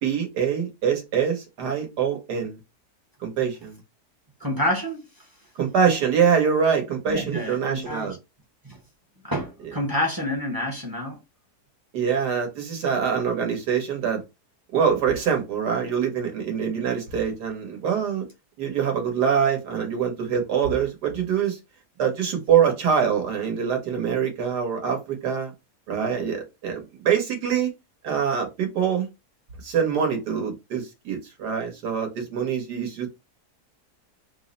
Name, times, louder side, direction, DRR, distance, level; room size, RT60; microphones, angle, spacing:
voice 1, 0.0-2.6 3.2-3.8 5.6-8.1 11.9-14.2 14.7-18.2 18.6-21.6 22.0-25.5 25.9-27.7 28.0-29.1 29.6-33.3, right 7 dB, 85° right, 1.7 m, -24 dB
voice 2, 4.4-5.0 7.1-8.2 8.6-8.8 9.2-11.2, left 1 dB, 25° right, 0.5 m, -28 dB
3.6 x 2.1 x 3.8 m
omnidirectional pair, 1.7 m